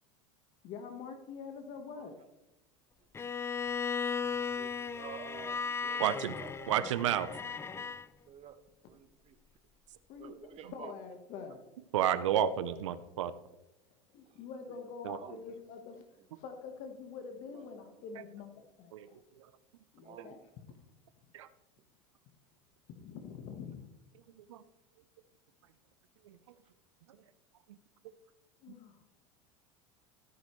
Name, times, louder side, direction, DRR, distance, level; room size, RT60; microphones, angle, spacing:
voice 1, 0.6-2.2 6.0-6.1 10.1-11.6 14.1-16.0 16.3-19.2 19.9-20.8 22.9-23.8 28.6-29.0, left 6 dB, 55° left, 6 dB, 1.4 m, -46 dB
Bowed string instrument, 3.1-8.1, left 6 dB, 15° left, 0.5 m, -36 dB
voice 2, 5.0-6.0 6.4-6.7 7.7-7.8 8.3-8.6 8.9-9.3 10.2-10.9 15.2-15.4 20.0-20.4, right 9 dB, 40° right, 10 dB, 1.2 m, -49 dB
voice 3, 6.0-6.3 6.7-7.3 11.9-13.3 15.1-15.2 18.9-19.1 20.2-20.3 21.3-21.5 24.5-24.6 26.3-26.4, right 10 dB, 80° right, 14 dB, 0.7 m, -30 dB
13.5 x 9.5 x 3.2 m, 0.92 s
hypercardioid pair, 95°, 16 cm